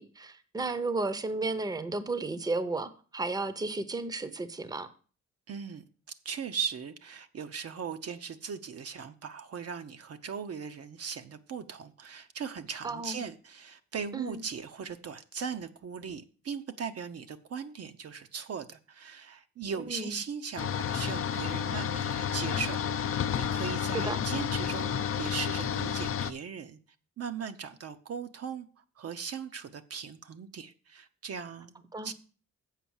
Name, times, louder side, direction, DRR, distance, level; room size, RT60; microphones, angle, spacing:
voice 1, 0.0-4.9 12.8-13.2 14.1-14.4 19.9-20.1 23.9-24.2 31.9-32.1, right 3 dB, 15° right, 0.7 m, -33 dB
voice 2, 5.5-5.8 6.2-26.8 27.2-28.7 29.0-32.1, right 6 dB, 55° right, 0.7 m, -39 dB
sound 1, 20.6-26.3, left 8 dB, 50° left, 0.5 m, -31 dB
7.5 x 5.4 x 7.1 m
cardioid pair, 120°, 30 cm